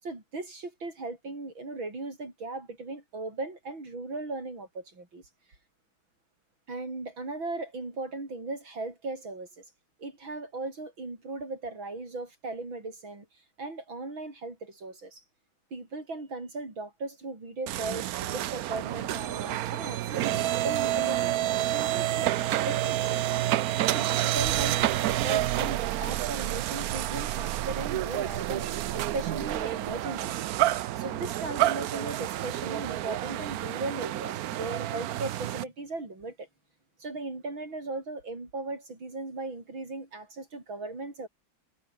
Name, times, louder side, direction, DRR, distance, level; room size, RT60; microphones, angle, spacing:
voice 1, 0.0-5.2 6.7-9.6 10.0-13.3 13.6-15.2 15.7-23.2 23.9-30.4 30.9-36.5 37.0-41.3, right 3 dB, 85° right, 7.1 m, -37 dB
sound 1, 17.7-35.6, right 13 dB, 70° right, 0.9 m, -29 dB
omnidirectional pair, 2.1 m